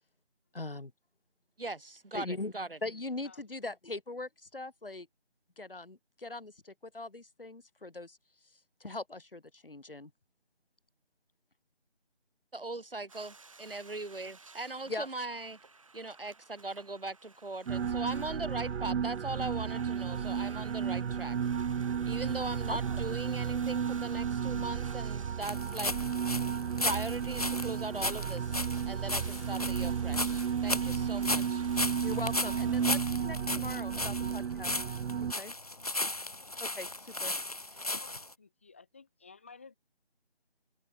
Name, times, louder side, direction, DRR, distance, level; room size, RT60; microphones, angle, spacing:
voice 1, 0.5-0.9 2.1-2.5 2.8-5.1 5.6-8.2 8.8-10.1 14.9-15.1 22.7-22.8 32.0-34.7 35.3-35.5 36.6-37.3, left 2 dB, 55° left, 3.0 m, -40 dB
voice 2, 1.6-2.8 12.5-15.6 15.9-21.4 22.1-26.0 26.8-28.6 28.9-31.6, right 2 dB, 55° right, 1.9 m, -39 dB
sound 1, 13.1-32.9, right 3 dB, 30° right, 7.8 m, -56 dB
sound 2, 17.7-35.3, right 7 dB, 80° right, 0.5 m, -33 dB
sound 3, 25.4-38.3, left 2 dB, 35° left, 1.0 m, -36 dB
voice 3, 37.8-39.8, left 4 dB, 10° left, 2.2 m, -55 dB
figure-of-eight pair, 170°, 33 cm